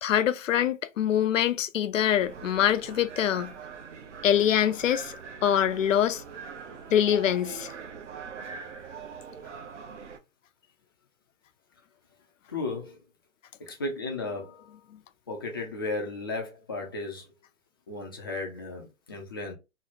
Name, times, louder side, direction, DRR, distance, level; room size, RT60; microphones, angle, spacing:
voice 1, 0.0-3.5 4.2-5.2 5.4-6.2 6.9-7.7, left 10 dB, 70° left, 0.5 m, -24 dB
sound 1, 2.2-10.2, right 5 dB, 60° right, 0.8 m, -42 dB
voice 2, 12.5-13.0 13.6-14.8 15.3-17.3 17.9-19.5, left 2 dB, 20° left, 0.4 m, -35 dB
3.1 x 2.1 x 3.9 m
hypercardioid pair, 135°, 41 cm